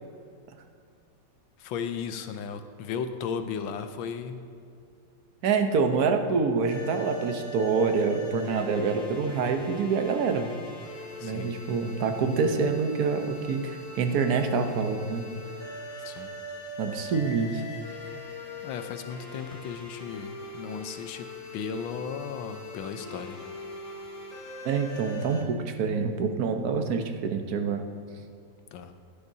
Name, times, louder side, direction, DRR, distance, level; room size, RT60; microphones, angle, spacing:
voice 1, 1.6-4.4 11.2-11.5 16.0-16.3 18.6-23.4 28.7-28.9, left 6 dB, 85° left, 8 dB, 1.5 m, -35 dB
voice 2, 5.4-10.5 11.2-15.3 16.8-17.6 24.6-27.9, right 5 dB, 60° right, 6 dB, 1.2 m, -26 dB
sound 1, 6.6-25.4, left 1 dB, 40° left, 2.8 m, -41 dB
17.0 x 10.5 x 2.7 m, 2.3 s
omnidirectional pair, 2.1 m